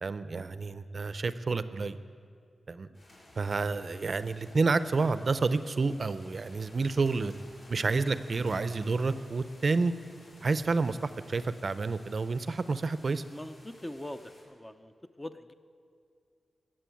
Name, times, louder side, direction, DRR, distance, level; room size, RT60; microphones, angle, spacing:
voice 1, 0.0-2.0 2.7-2.9 3.4-7.3 7.7-9.9 10.4-13.2, right 4 dB, 45° right, 13 dB, 0.5 m, -29 dB
sound 1, 2.9-14.4, left 1 dB, 55° left, 5.2 m, -55 dB
voice 2, 13.3-14.9 15.2-15.5, left 1 dB, 15° left, 9 dB, 0.5 m, -42 dB
20.0 x 7.7 x 9.1 m, 2.4 s
wide cardioid pair, 145°, 0 cm